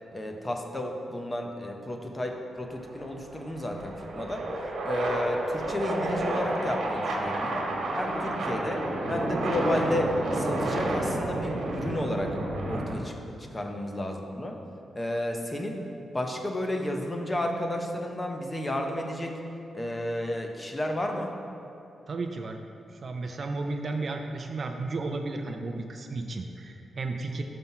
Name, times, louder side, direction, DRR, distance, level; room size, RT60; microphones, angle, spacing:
voice 1, 0.1-4.5 4.8-7.7 7.9-12.4 12.6-14.6 14.9-15.8 16.1-19.4 19.7-21.3, left 1 dB, 15° left, 3 dB, 0.5 m, -32 dB
sound 1, 2.6-13.0, right 1 dB, 80° right, 1.2 m, -30 dB
voice 2, 22.1-22.6 22.9-27.4, right 3 dB, 35° right, 4 dB, 0.3 m, -33 dB
5.8 x 5.4 x 5.5 m, 2.7 s
wide cardioid pair, 175°, 0 cm